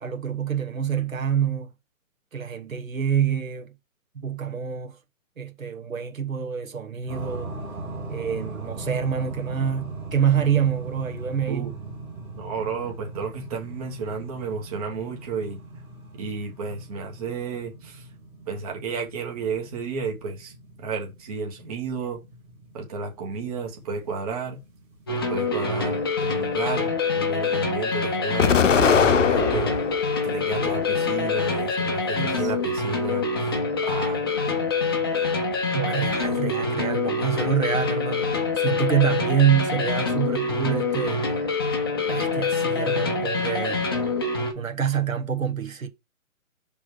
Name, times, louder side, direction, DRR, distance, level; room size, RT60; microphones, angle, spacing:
voice 1, 0.0-1.7 2.3-3.7 4.1-5.0 5.4-7.6 8.1-11.7 32.2-32.5 35.7-44.1 44.5-45.9, right 8 dB, 70° right, 1.5 m, -26 dB
sound 1, 7.1-26.9, right 2 dB, 5° right, 1.2 m, -41 dB
voice 2, 12.4-15.6 16.1-18.1 18.4-22.2 22.7-24.6 25.3-29.7 30.2-33.5 33.8-34.2, right 5 dB, 25° right, 1.5 m, -32 dB
sound 2, 25.1-44.5, left 4 dB, 15° left, 0.7 m, -25 dB
Explosion, 28.4-30.0 30.6-31.5, left 7 dB, 60° left, 0.8 m, -21 dB
6.0 x 3.6 x 4.7 m
figure-of-eight pair, 150°, 42 cm